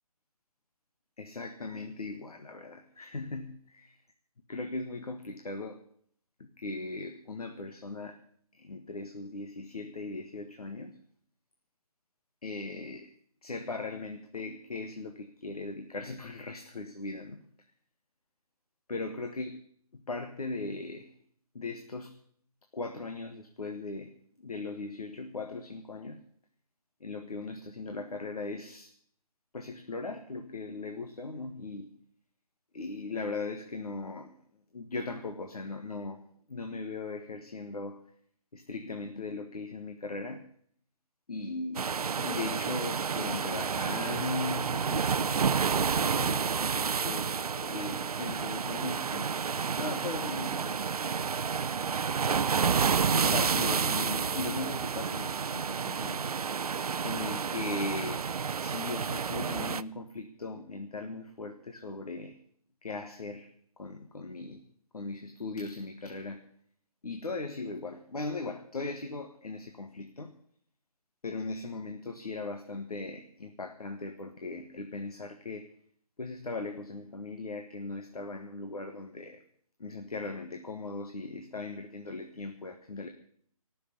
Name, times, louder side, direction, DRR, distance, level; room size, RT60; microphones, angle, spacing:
voice 1, 1.2-3.8 4.5-5.8 6.4-8.2 8.5-11.0 12.4-13.1 13.4-17.4 18.9-19.6 19.9-21.2 21.5-22.1 22.7-24.1 24.4-26.2 27.0-28.9 29.5-31.9 32.7-34.3 34.7-36.2 36.5-38.0 38.5-40.5 41.3-41.9 42.2-49.3 49.8-51.1 53.1-56.3 56.8-62.4 62.8-64.6 64.9-66.5 67.0-70.3 71.2-75.7 76.2-79.4 79.8-83.1, left 3 dB, 80° left, 5 dB, 1.7 m, -39 dB
sound 1, 41.7-59.8, right 6 dB, 75° right, 0.6 m, -30 dB
20.0 x 6.7 x 9.6 m, 0.62 s
figure-of-eight pair, 155°, 19 cm